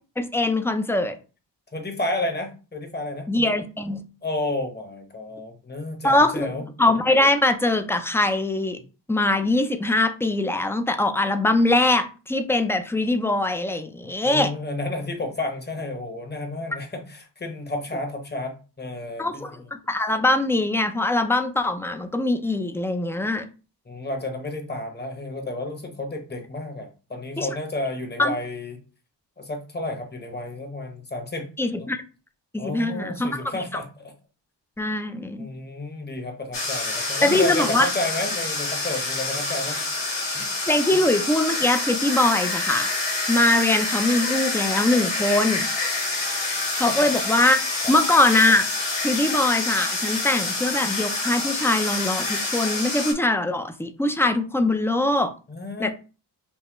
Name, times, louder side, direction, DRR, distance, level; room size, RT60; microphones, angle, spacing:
voice 1, 0.2-1.1 3.3-4.0 6.0-6.5 6.8-8.8 9.1-14.5 19.2-19.6 19.9-23.4 27.4-27.5 28.2-28.3 31.6-32.0 32.5-33.3 34.8-35.5 37.2-37.9 40.7-42.9 43.3-45.7 46.8-47.6 47.9-48.7 49.0-55.3 55.8-55.9, left 2 dB, 5° left, 0.4 m, -22 dB
voice 2, 1.7-3.3 4.2-6.7 14.2-19.7 23.9-28.8 29.4-31.5 31.8-31.9 32.6-34.1 35.4-39.8 40.3-40.5 40.9-41.0 46.9-47.1 47.8-47.9 55.5-55.9, left 2 dB, 20° left, 1.0 m, -31 dB
sound 1, 36.5-53.1, left 3 dB, 75° left, 1.4 m, -27 dB
5.5 x 2.1 x 3.0 m
cardioid pair, 85°, 44 cm